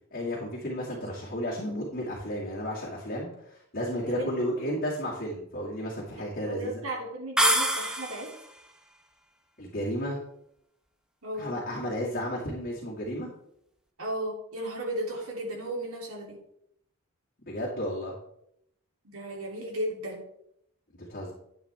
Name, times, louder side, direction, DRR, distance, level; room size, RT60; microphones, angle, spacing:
voice 1, 0.1-6.7 9.6-10.2 11.4-13.3 17.5-18.1 21.0-21.3, equal, 45° left, -6 dB, 2.2 m, -33 dB
voice 2, 4.1-4.4 6.4-8.3 11.2-11.5 14.0-16.4 19.0-20.2, right 1 dB, 70° right, -2 dB, 3.1 m, -34 dB
sound 1, 7.4-8.5, right 1 dB, 5° right, 0.8 m, -25 dB
11.0 x 8.3 x 3.5 m, 0.76 s
head